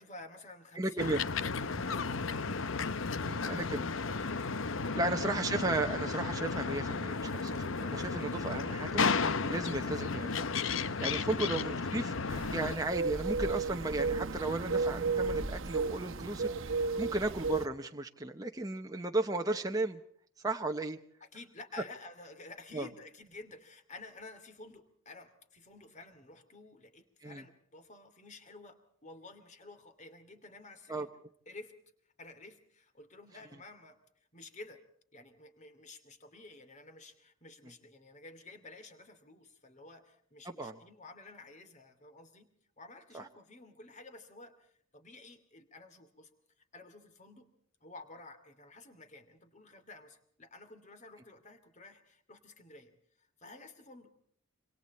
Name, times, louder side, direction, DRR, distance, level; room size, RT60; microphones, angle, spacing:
voice 1, 0.0-1.0 1.4-2.4 4.7-5.0 11.2-11.4 21.2-31.1 31.5-31.7 32.2-34.0 34.3-34.8 35.1-42.5 42.8-46.3 46.7-47.5 47.8-52.9 53.2-54.1, left 2 dB, 35° left, 9 dB, 2.8 m, -52 dB
voice 2, 0.8-1.2 3.2-3.9 4.1-4.6 5.0-10.5 10.8-20.0 20.4-21.0 22.7-22.9 27.2-27.4 30.9-31.1 40.6-40.8 43.1-43.2, right 2 dB, 15° right, 3 dB, 0.9 m, -35 dB
sound 1, 1.0-12.8, left 4 dB, 65° left, 0.8 m, -33 dB
sound 2, 12.3-17.7, right 4 dB, 65° right, 1.2 m, -33 dB
26.5 x 26.0 x 4.3 m, 0.63 s
head